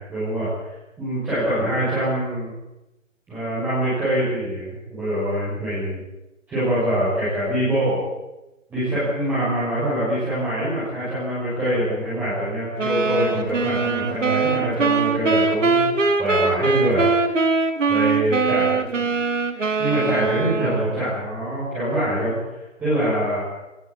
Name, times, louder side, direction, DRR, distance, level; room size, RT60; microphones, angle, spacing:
voice 1, 0.1-0.5 1.0-2.5 3.3-6.0 6.5-8.0 8.7-17.1 17.9-19.1 19.8-22.4 22.8-23.4, right 1 dB, 5° right, -12 dB, 6.4 m, -24 dB
sound 1, 12.8-21.1, right 4 dB, 70° right, 2.5 m, -22 dB
20.5 x 19.0 x 8.6 m, 0.96 s
hypercardioid pair, 170°, 39 cm